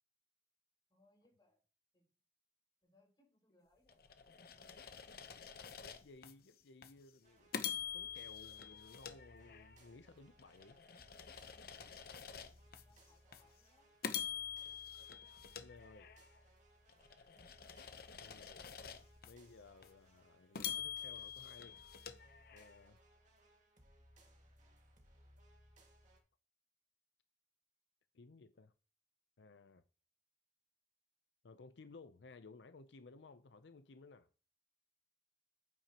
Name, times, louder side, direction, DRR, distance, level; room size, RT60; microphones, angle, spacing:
voice 1, 0.9-1.6 1.9-2.1 2.8-5.1 12.8-13.9, left 2 dB, 25° left, 5.6 m, -73 dB
sound 1, 3.9-6.3 6.8-7.0 7.5-9.9 10.4-12.8 13.3-13.5 14.0-16.4 16.9-19.3 19.8-19.9 20.5-22.9, left 8 dB, 60° left, 0.9 m, -46 dB
voice 2, 5.8-10.8 15.6-16.1 18.2-18.7 19.2-21.8 22.5-23.0 28.1-28.7 29.4-29.8 31.4-34.3, left 3 dB, 85° left, 0.6 m, -58 dB
sound 2, 7.2-26.2, equal, 45° right, 2.0 m, -65 dB
11.5 x 9.1 x 2.9 m
head